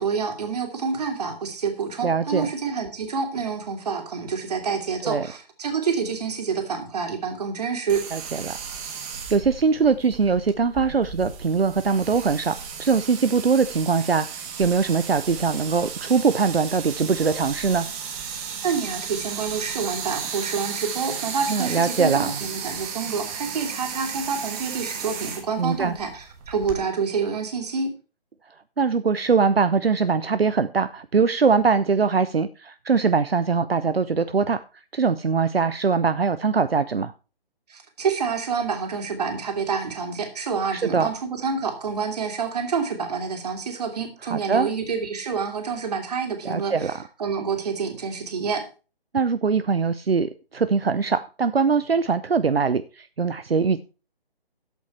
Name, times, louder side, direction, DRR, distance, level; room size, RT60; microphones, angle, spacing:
voice 1, 0.0-8.0 18.6-27.9 37.7-48.6, right 5 dB, 40° right, 2.8 m, -28 dB
voice 2, 2.0-2.5 5.0-5.3 8.1-8.6 9.3-17.9 21.5-22.4 25.6-25.9 28.8-34.6 34.9-37.1 40.7-41.1 44.2-44.7 46.4-47.0 49.1-53.8, right 5 dB, 75° right, 0.8 m, -22 dB
sound 1, 7.9-26.8, right 7 dB, 15° right, 1.4 m, -34 dB
12.5 x 8.2 x 4.5 m
figure-of-eight pair, 145°, 30 cm